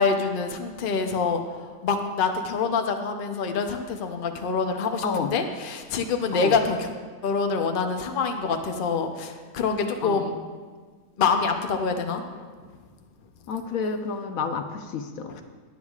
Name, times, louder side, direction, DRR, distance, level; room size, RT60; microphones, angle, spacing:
voice 1, 0.0-6.9 7.2-10.3 11.2-12.4, left 5 dB, 85° left, 5 dB, 0.4 m, -26 dB
voice 2, 5.0-5.3 6.3-6.5 10.0-10.3 13.5-15.4, left 5 dB, 65° left, 6 dB, 0.9 m, -29 dB
18.5 x 8.1 x 2.4 m, 1.5 s
omnidirectional pair, 2.0 m